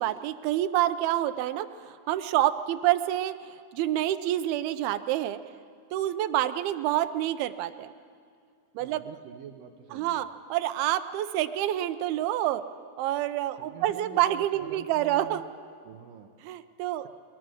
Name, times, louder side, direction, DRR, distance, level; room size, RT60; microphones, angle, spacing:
voice 1, 0.0-5.4 5.9-7.9 8.8-9.0 9.9-12.6 13.0-15.4 16.4-17.1, right 13 dB, 90° right, 10 dB, 2.6 m, -28 dB
voice 2, 8.8-10.2 13.6-15.4 15.8-16.3, right 9 dB, 75° right, 6 dB, 2.4 m, -46 dB
21.5 x 20.5 x 6.4 m, 2.2 s
omnidirectional pair, 4.3 m